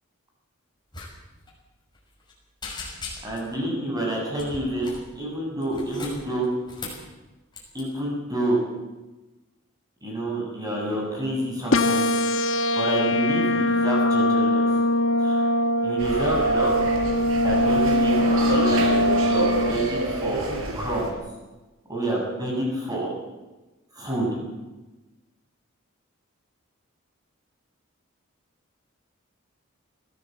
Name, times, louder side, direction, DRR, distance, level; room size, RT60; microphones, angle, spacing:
sound 1, 0.9-1.1 1.3-1.5 1.9-2.3 2.6-3.5 4.3-5.1 5.6-7.1 7.5-7.8, left 3 dB, 20° left, 6.3 m, -38 dB
voice 1, 3.2-6.5 7.7-8.6 10.0-12.1 12.7-14.6 15.2-15.5 15.8-16.7 17.4-18.9 19.2-20.5 20.7-21.1 21.9-23.1 23.9-24.4, right 1 dB, 20° right, -2 dB, 7.7 m, -28 dB
sound 2, 11.7-19.7, left 1 dB, 60° left, 1.2 m, -22 dB
sound 3, 16.0-21.1, right 1 dB, 80° right, 4.5 m, -28 dB
21.5 x 16.0 x 7.9 m, 1.1 s
head